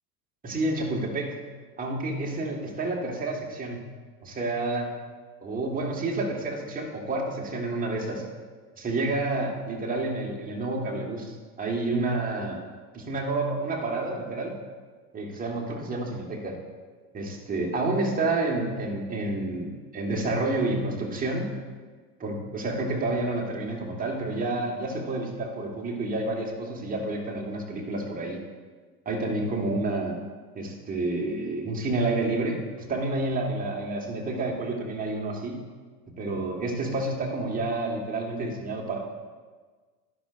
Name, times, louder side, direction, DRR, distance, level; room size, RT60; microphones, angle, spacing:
voice 1, 0.4-1.4 1.8-3.8 4.2-4.9 5.4-8.2 8.8-12.6 12.9-14.5 15.1-16.6 17.1-21.5 22.2-28.4 29.1-30.2 30.6-32.6 32.9-35.6 36.2-39.0, right 2 dB, 20° right, -1 dB, 1.7 m, -29 dB
12.0 x 11.5 x 2.6 m, 1.4 s
figure-of-eight pair, 80°, 47 cm